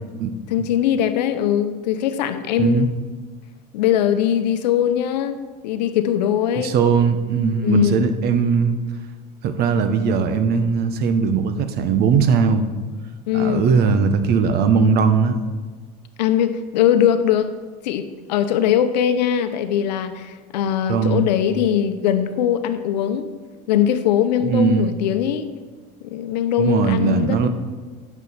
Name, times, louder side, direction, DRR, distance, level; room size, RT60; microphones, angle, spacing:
voice 1, 0.5-2.8 3.7-5.4 5.6-6.8 7.6-8.0 13.3-13.7 16.2-17.5 17.8-23.3 23.7-25.5 26.0-27.5, left 10 dB, 90° left, 10 dB, 0.8 m, -21 dB
voice 2, 6.5-8.8 9.4-12.7 13.3-15.4 20.9-21.3 24.4-24.9 26.6-27.5, right 5 dB, 50° right, 9 dB, 0.9 m, -19 dB
10.5 x 7.1 x 4.2 m, 1.4 s
supercardioid pair, 110°, 21 cm